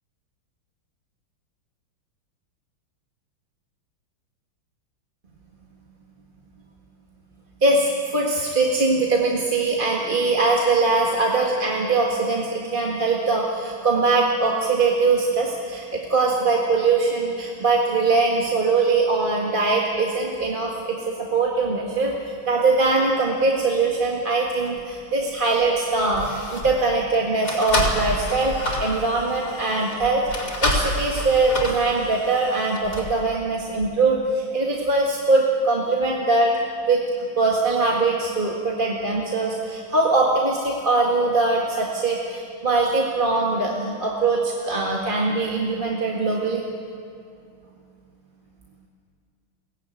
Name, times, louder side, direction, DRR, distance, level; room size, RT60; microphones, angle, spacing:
voice 1, 7.6-30.2 30.6-36.5 36.9-37.0 37.4-46.6, right 3 dB, 25° right, -2 dB, 1.8 m, -22 dB
sound 1, 24.7-24.8 25.6-25.8 26.1-26.8 27.4-33.2 33.8-33.9, left 1 dB, 40° left, 3.9 m, -28 dB
23.0 x 18.0 x 9.1 m, 2.4 s
omnidirectional pair, 2.3 m